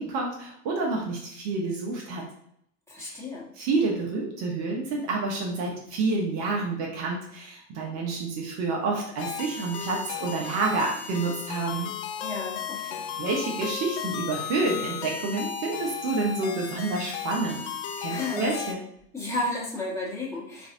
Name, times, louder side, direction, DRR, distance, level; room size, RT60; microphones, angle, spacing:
voice 1, 0.0-2.3 3.0-3.2 3.6-11.9 13.2-17.6 18.0-18.8, right 3 dB, 45° right, -1 dB, 0.8 m, -29 dB
voice 2, 2.9-3.5 12.2-13.0 18.1-18.5 19.1-20.7, left 2 dB, 5° left, -6 dB, 1.2 m, -32 dB
sound 1, 9.2-18.7, left 7 dB, 60° left, 0.5 m, -35 dB
3.9 x 2.6 x 2.5 m, 0.71 s
figure-of-eight pair, 80°, 37 cm